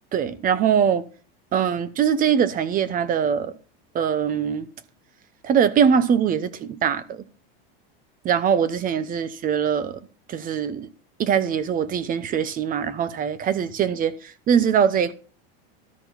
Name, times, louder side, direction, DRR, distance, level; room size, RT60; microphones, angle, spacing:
voice 1, 0.1-1.0 1.5-3.5 3.9-4.7 5.4-7.2 8.2-10.0 10.3-10.9 11.2-15.1, right 7 dB, 30° right, 0.8 m, -22 dB
13.0 x 4.5 x 5.7 m
supercardioid pair, 130°, 29 cm